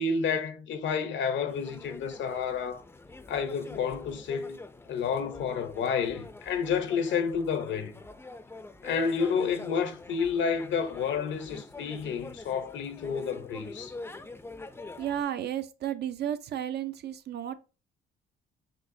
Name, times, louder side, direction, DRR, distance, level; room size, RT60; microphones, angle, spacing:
voice 1, 0.0-2.8 3.3-4.6 4.9-8.0 8.8-13.9, left 6 dB, 70° left, 0.7 m, -30 dB
sound 1, 1.5-15.2, left 2 dB, 10° left, 0.4 m, -46 dB
voice 2, 15.0-17.6, right 10 dB, 55° right, 0.5 m, -33 dB
6.4 x 2.5 x 2.6 m
cardioid pair, 90°, 20 cm